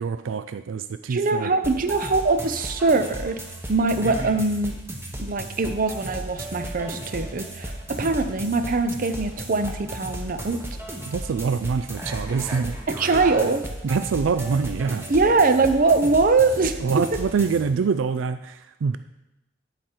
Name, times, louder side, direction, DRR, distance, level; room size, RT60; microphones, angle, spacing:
voice 1, 0.0-1.5 11.1-12.8 13.8-15.1 16.8-19.0, right 5 dB, 90° right, 11 dB, 0.4 m, -25 dB
voice 2, 1.1-3.4 3.7-4.8 5.2-10.6 12.9-13.7 15.1-16.8, right 3 dB, 45° right, 9 dB, 0.6 m, -22 dB
sound 1, 1.6-17.6, right 1 dB, 15° right, 1.0 m, -35 dB
11.5 x 5.0 x 4.4 m, 0.92 s
head